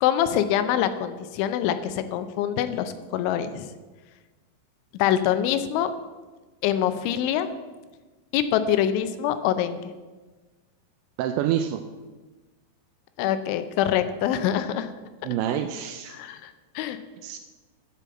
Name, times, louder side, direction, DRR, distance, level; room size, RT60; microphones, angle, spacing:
voice 1, 0.0-3.7 4.9-5.9 6.6-7.5 8.3-9.8 13.2-14.9 16.1-17.0, left 10 dB, 80° left, 11 dB, 2.9 m, -25 dB
voice 2, 11.2-11.8 15.2-16.2 17.2-17.4, right 10 dB, 85° right, 9 dB, 2.6 m, -27 dB
11.5 x 5.0 x 7.6 m, 1.3 s
omnidirectional pair, 5.6 m